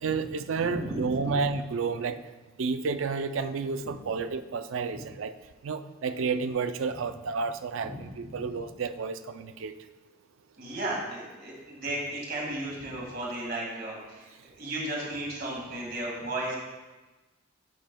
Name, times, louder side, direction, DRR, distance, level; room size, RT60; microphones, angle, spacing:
voice 1, 0.0-2.2 2.6-5.3 5.6-9.8, right 5 dB, 70° right, 10 dB, 0.4 m, -31 dB
voice 2, 0.6-1.4 7.8-8.3 10.6-14.3 14.6-16.6, right 1 dB, 50° right, -3 dB, 2.0 m, -35 dB
12.0 x 5.5 x 2.2 m, 1.2 s
head